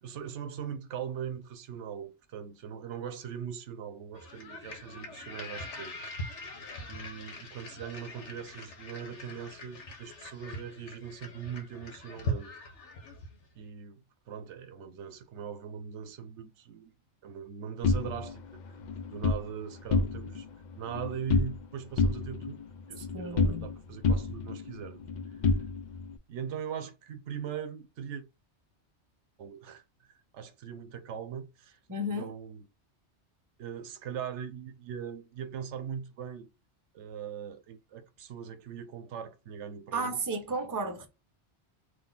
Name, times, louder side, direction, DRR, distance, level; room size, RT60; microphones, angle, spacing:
voice 1, 0.0-6.0 6.9-12.5 13.6-16.9 17.2-18.4 18.7-18.8 19.1-20.5 20.7-22.6 22.9-25.0 26.3-28.2 29.4-31.8 32.1-32.7 33.6-36.5 36.9-40.2, right 8 dB, 90° right, 0.9 m, -40 dB
sound 1, 4.1-13.5, left 1 dB, 90° left, 1.3 m, -41 dB
sound 2, 17.8-19.4 19.8-20.5 20.7-21.7 22.0-23.8 24.0-26.1, left 3 dB, 55° left, 0.5 m, -29 dB
voice 2, 23.1-23.6 31.9-32.3 39.9-41.1, right 1 dB, 20° right, 0.6 m, -33 dB
3.8 x 2.6 x 3.8 m
omnidirectional pair, 1.2 m